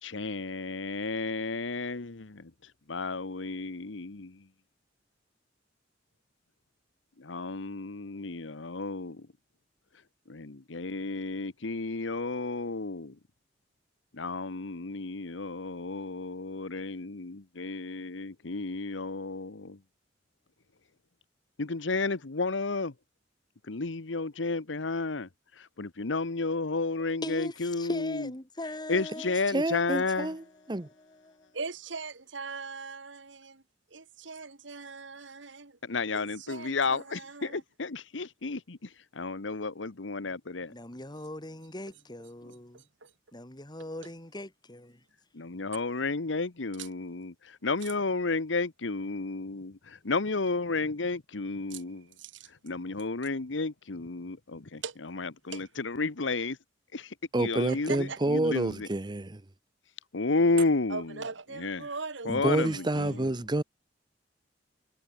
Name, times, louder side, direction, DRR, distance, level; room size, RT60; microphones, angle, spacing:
voice 1, 0.0-4.5 7.2-9.3 10.3-13.2 14.1-19.8 21.6-22.9 23.6-28.3 28.9-30.3 35.8-40.7 45.3-52.1 52.5-56.6 56.9-58.9 60.1-61.1 61.6-61.9 62.2-63.2, left 3 dB, 85° left, 1.1 m, -32 dB
voice 2, 27.2-29.4 40.7-42.8 43.3-45.0, left 1 dB, 25° left, 2.8 m, -40 dB
voice 3, 29.5-30.4 30.7-30.8 57.3-59.5 62.3-63.6, right 2 dB, 25° right, 0.8 m, -28 dB
voice 4, 31.6-33.6 33.9-35.8 36.1-37.6 42.7-43.1 46.8-46.9 51.7-51.8 52.2-52.5 54.8-55.0 55.5-55.6 57.7-58.2 60.9-63.3, right 4 dB, 75° right, 1.8 m, -41 dB
head